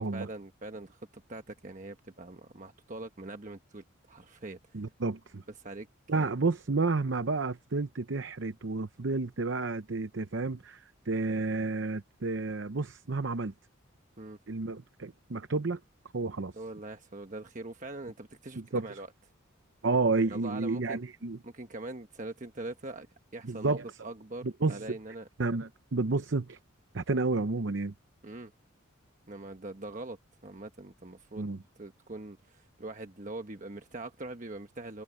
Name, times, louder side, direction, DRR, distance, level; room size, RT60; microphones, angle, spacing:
voice 1, 0.0-4.8 5.6-5.9 6.1-6.3 14.2-14.4 16.6-19.1 20.3-21.0 21.4-23.1 23.3-25.3 28.2-28.5 29.3-30.2 30.4-31.5 31.8-35.0, right 2 dB, 40° right, 1.2 m, -42 dB
voice 2, 4.7-5.4 6.1-13.5 14.5-15.8 16.1-16.6 18.6-18.8 19.8-21.4 23.4-23.8 24.4-24.9 25.4-26.6 26.9-27.9 31.4-31.6, right 3 dB, 60° right, 0.8 m, -31 dB
head